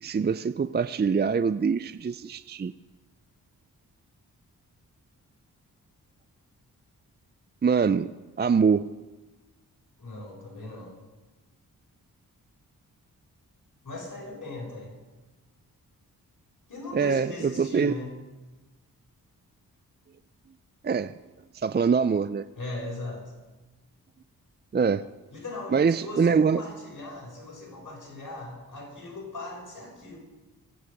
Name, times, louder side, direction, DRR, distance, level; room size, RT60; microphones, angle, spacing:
voice 1, 0.0-2.7 7.6-8.1 8.4-8.9 16.9-17.9 20.8-21.1 21.5-22.5 24.7-25.0 25.7-26.6, right 5 dB, 25° right, 14 dB, 0.5 m, -24 dB
voice 2, 10.0-11.0 13.8-14.9 16.7-18.1 22.6-23.2 25.3-30.2, left 2 dB, 55° left, -4 dB, 6.7 m, -38 dB
24.0 x 9.5 x 5.3 m, 1.2 s
supercardioid pair, 45°, 38 cm